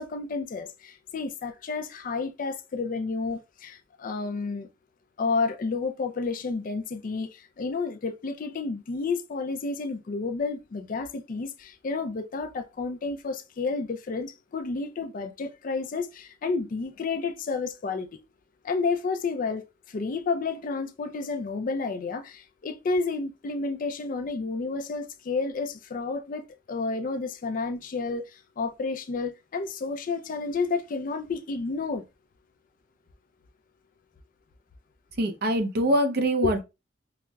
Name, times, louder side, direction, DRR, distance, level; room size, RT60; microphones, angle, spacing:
voice 1, 0.0-4.7 5.2-18.2 18.6-32.0 36.4-36.6, left 4 dB, 45° left, 0.4 m, -31 dB
voice 2, 35.2-36.6, right 1 dB, 55° right, 0.6 m, -24 dB
5.6 x 2.0 x 2.3 m
head